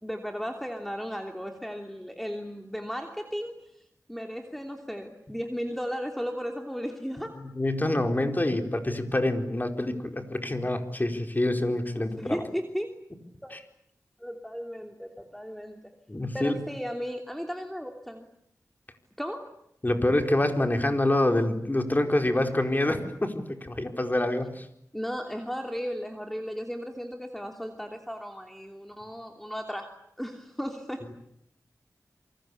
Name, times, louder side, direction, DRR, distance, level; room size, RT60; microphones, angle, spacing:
voice 1, 0.0-3.8 4.1-7.3 12.2-12.9 13.4-13.5 14.2-15.8 16.3-18.3 19.2-19.6 24.9-29.9 30.2-31.0, equal, 5° left, 4 dB, 3.0 m, -35 dB
voice 2, 7.5-12.5 13.5-13.6 16.1-16.6 19.8-24.7, left 1 dB, 30° left, 5 dB, 4.7 m, -26 dB
28.5 x 24.5 x 8.5 m, 0.72 s
wide cardioid pair, 60°, 6 cm